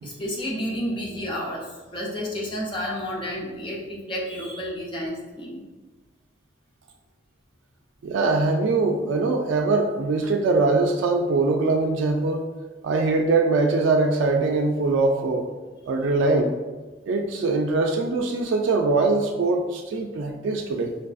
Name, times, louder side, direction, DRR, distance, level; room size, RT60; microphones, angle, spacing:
voice 1, 0.0-5.6, equal, 25° left, -3 dB, 0.4 m, -31 dB
voice 2, 8.0-12.4 12.8-15.5 15.9-16.5 17.1-20.9, right 3 dB, 75° right, 2 dB, 0.3 m, -22 dB
4.5 x 2.5 x 2.4 m, 1.2 s
head